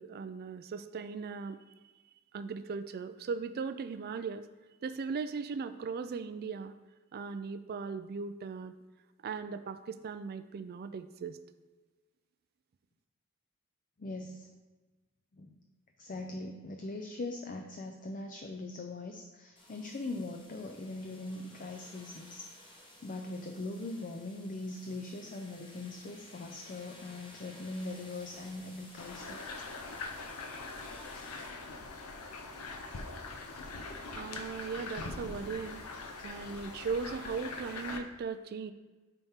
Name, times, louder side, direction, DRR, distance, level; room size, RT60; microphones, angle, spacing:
voice 1, 0.0-1.6 2.3-4.5 4.8-6.7 7.1-8.8 9.2-11.4 34.2-35.8 36.2-38.7, right 5 dB, 45° right, 10 dB, 0.3 m, -38 dB
voice 2, 14.0-14.5 15.3-15.5 16.0-22.5 23.0-29.4 32.9-33.0 33.8-34.0, left 2 dB, 40° left, 4 dB, 0.5 m, -41 dB
sound 1, 19.6-31.5, left 1 dB, 20° left, 1.0 m, -55 dB
sound 2, 29.0-38.0, left 3 dB, 75° left, 0.7 m, -42 dB
9.0 x 4.2 x 3.6 m, 1.3 s
head